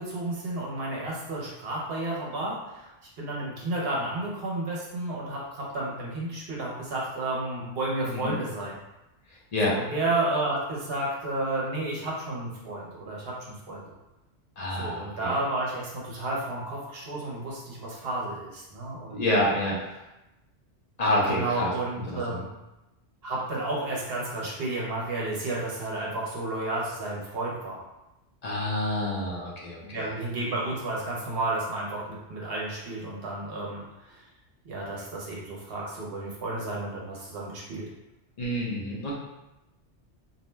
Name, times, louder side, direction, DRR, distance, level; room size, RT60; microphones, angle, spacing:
voice 1, 0.0-2.9 3.2-8.8 9.7-13.9 14.7-19.5 21.3-22.5 23.2-27.8 29.8-33.8 34.1-34.2 34.6-37.9, right 2 dB, 65° right, -4 dB, 0.9 m, -32 dB
voice 2, 8.0-8.3 9.5-9.7 14.6-15.3 19.1-19.8 21.0-21.7 22.1-22.4 28.4-30.1 38.4-39.1, left 1 dB, 45° left, -4 dB, 0.6 m, -28 dB
2.6 x 2.1 x 3.1 m, 0.97 s
omnidirectional pair, 1.2 m